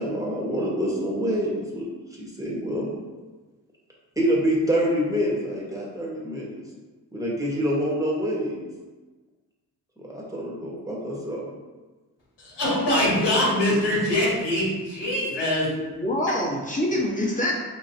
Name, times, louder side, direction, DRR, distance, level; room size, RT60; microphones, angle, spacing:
voice 1, 0.0-1.9 2.2-2.9 4.2-6.6 7.1-8.6 10.0-11.5, equal, 10° right, -4 dB, 1.3 m, -26 dB
voice 2, 12.4-15.7, left 1 dB, 80° left, -6 dB, 1.5 m, -23 dB
voice 3, 15.7-17.6, left 1 dB, 20° left, -4 dB, 1.2 m, -25 dB
4.5 x 3.0 x 2.8 m, 1.3 s
cardioid pair, 60°, 41 cm